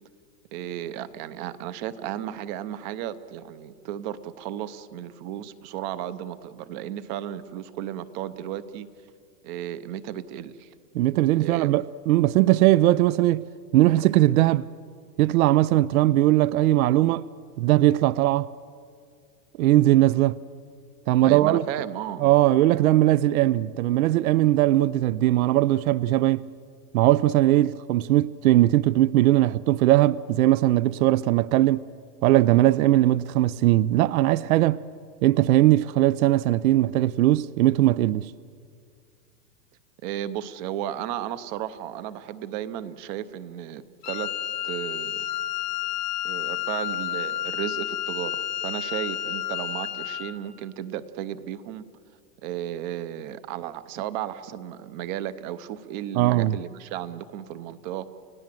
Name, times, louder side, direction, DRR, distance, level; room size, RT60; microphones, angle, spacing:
voice 1, 0.5-8.9 9.4-10.7 11.4-11.7 21.2-22.2 40.0-44.3 44.6-45.4 46.2-51.9 52.4-58.2, right 11 dB, 30° right, 0.7 m, -34 dB
voice 2, 10.9-13.5 13.7-14.7 15.2-17.2 17.6-18.5 19.6-20.4 21.1-21.6 22.2-26.5 26.9-31.9 32.2-34.8 35.2-38.3 56.1-56.5, right 15 dB, 60° right, 0.5 m, -20 dB
Wind instrument woodwind instrument, 44.0-50.4, left 11 dB, 85° left, 2.3 m, -30 dB
30.0 x 17.0 x 7.6 m
supercardioid pair, 160°, 48 cm